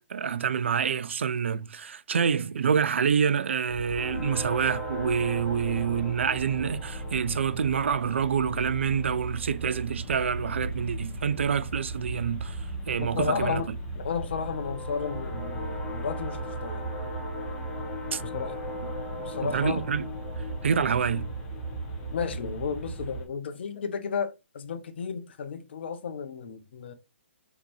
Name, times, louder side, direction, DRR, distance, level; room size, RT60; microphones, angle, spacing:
voice 1, 0.1-12.6 12.9-13.6 18.1-18.2 19.5-20.1 20.6-21.3, right 7 dB, 70° right, 0.5 m, -27 dB
sound 1, 3.7-23.2, right 1 dB, 25° left, 1.6 m, -35 dB
voice 2, 13.0-16.9 18.2-18.6 19.2-19.9 22.1-26.9, left 6 dB, 60° left, 1.0 m, -33 dB
4.5 x 4.0 x 2.6 m
figure-of-eight pair, 130°, 7 cm